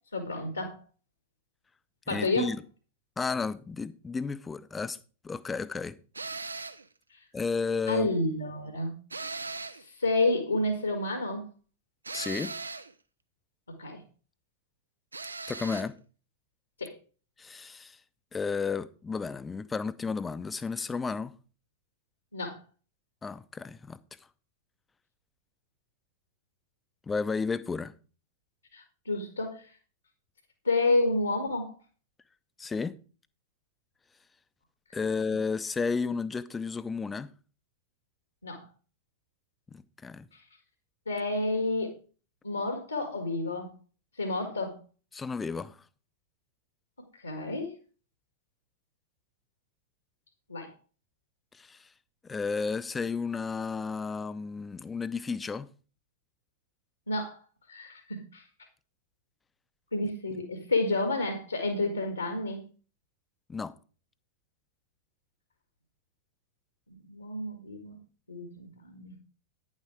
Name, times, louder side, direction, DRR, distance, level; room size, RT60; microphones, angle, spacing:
voice 1, 0.1-0.8 2.1-2.5 7.9-8.9 9.7-11.4 13.8-14.0 16.8-16.9 22.3-22.6 28.7-29.6 30.7-31.7 35.3-35.4 38.4-38.6 41.1-41.9 42.4-43.7 44.2-44.8 47.2-47.7 50.5-50.7 57.1-57.4 57.7-58.4 59.9-62.6 67.1-68.0 68.3-69.1, left 2 dB, 80° left, 1.8 m, -30 dB
voice 2, 2.1-2.6 3.2-5.0 5.2-5.9 7.3-8.1 12.1-12.5 15.5-16.0 17.4-18.0 18.3-21.3 23.2-24.0 27.1-27.9 32.6-33.0 34.9-37.3 39.7-40.3 45.1-45.8 51.5-51.9 52.2-55.7 63.5-63.7, left 5 dB, 15° left, 0.7 m, -32 dB
sound 1, 6.1-6.9 9.1-9.9 12.0-12.9 15.1-15.9, right 3 dB, 80° right, 0.6 m, -38 dB
9.7 x 7.4 x 4.9 m
figure-of-eight pair, 90°, 0 cm